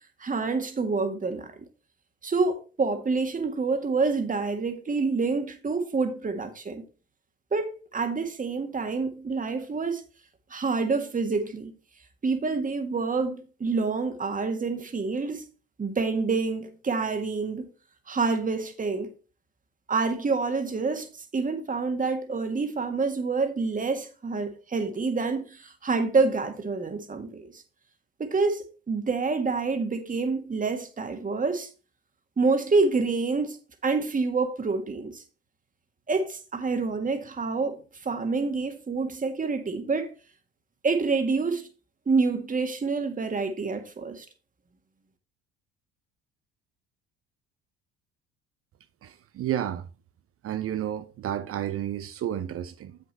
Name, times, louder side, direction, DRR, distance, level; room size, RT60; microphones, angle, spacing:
voice 1, 0.2-1.7 2.2-6.8 7.5-10.0 10.5-11.7 12.2-15.4 15.8-17.7 18.1-19.1 19.9-27.6 28.2-31.7 32.4-33.6 33.8-35.2 36.1-40.1 40.8-41.7 42.1-44.3, right 4 dB, 25° right, 1.8 m, -27 dB
voice 2, 49.0-49.9 50.4-53.0, right 11 dB, 50° right, 0.8 m, -31 dB
7.6 x 6.4 x 4.3 m
supercardioid pair, 75°, 30 cm